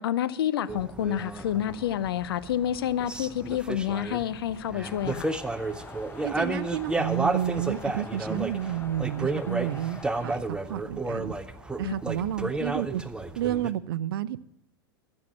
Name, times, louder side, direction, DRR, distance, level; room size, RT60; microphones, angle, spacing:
voice 1, 0.0-5.3 11.8-12.3, left 11 dB, 75° left, 0.7 m, -29 dB
sound 1, 0.7-13.7, right 2 dB, 5° right, 0.7 m, -32 dB
Brass instrument, 4.3-12.0, right 6 dB, 55° left, 4.0 m, -56 dB
sound 2, 4.8-10.4, left 4 dB, 15° left, 1.0 m, -45 dB
voice 2, 6.2-11.3 11.8-13.0 13.4-14.4, right 12 dB, 75° right, 0.6 m, -30 dB
14.0 x 6.6 x 7.3 m
hypercardioid pair, 100°, 13 cm